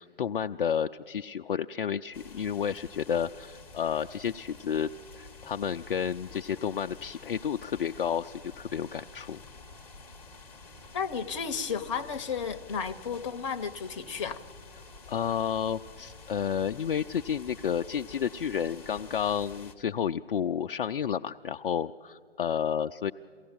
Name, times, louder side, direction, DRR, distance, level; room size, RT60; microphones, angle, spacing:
voice 1, 0.0-4.9 5.1-9.4 15.1-23.1, left 8 dB, 55° left, 6 dB, 0.5 m, -31 dB
sound 1, 2.1-19.7, left 3 dB, 5° left, 1.0 m, -49 dB
voice 2, 10.9-14.4, left 6 dB, 30° left, 8 dB, 0.8 m, -33 dB
23.0 x 16.5 x 8.8 m, 2.2 s
figure-of-eight pair, 145°, 32 cm